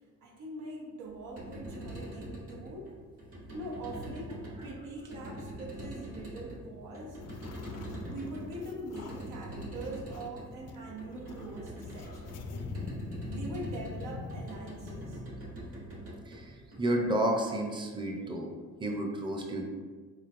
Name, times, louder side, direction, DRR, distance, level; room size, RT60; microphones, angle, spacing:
voice 1, 0.2-2.9 3.5-7.2 8.0-12.4 13.3-15.2, right 1 dB, 85° right, -1 dB, 0.8 m, -43 dB
sound 1, 1.1-17.3, right 1 dB, 50° right, 1.2 m, -44 dB
sound 2, 7.2-10.3 10.7-10.8 11.1-15.2, left 3 dB, 55° left, 0.4 m, -43 dB
voice 2, 16.8-18.5 18.8-19.6, right 1 dB, 15° right, 1 dB, 0.6 m, -31 dB
4.2 x 3.1 x 2.5 m, 1.5 s
cardioid pair, 90°, 30 cm